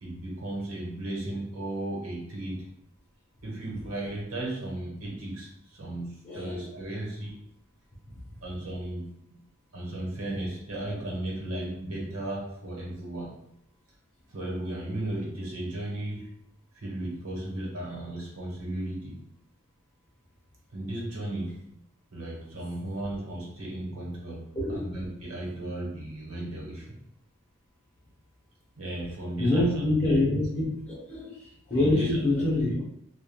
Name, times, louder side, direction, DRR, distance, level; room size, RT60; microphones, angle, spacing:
voice 1, 0.0-2.7 3.4-7.4 8.4-9.4 9.7-13.4 14.3-16.3 16.7-19.2 20.7-21.8 22.1-27.0 28.8-30.2 31.7-32.2, right 1 dB, 90° right, -3 dB, 1.0 m, -35 dB
voice 2, 6.2-6.6 24.6-24.8 29.4-32.8, left 2 dB, 25° left, -9 dB, 0.8 m, -26 dB
3.2 x 2.2 x 2.2 m, 0.75 s
head